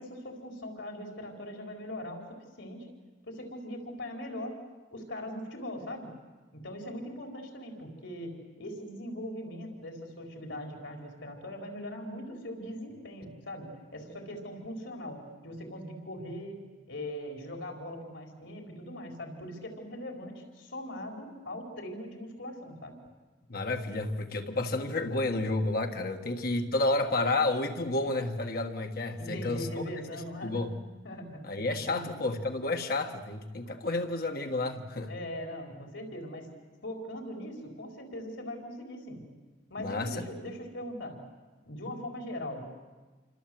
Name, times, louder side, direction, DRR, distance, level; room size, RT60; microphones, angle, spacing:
voice 1, 0.0-2.2 2.6-2.9 3.2-4.6 4.9-6.1 6.5-13.7 13.9-16.6 16.9-22.9 29.2-30.8 31.0-31.4 31.7-32.2 35.1-36.5 36.8-39.2 39.7-41.2 41.6-42.6, left 1 dB, 80° left, 3 dB, 4.4 m, -40 dB
voice 2, 23.5-29.7 30.4-30.7 31.4-35.1 39.8-40.2, left 2 dB, 55° left, 5 dB, 1.6 m, -30 dB
28.5 x 25.0 x 7.8 m, 1.3 s
head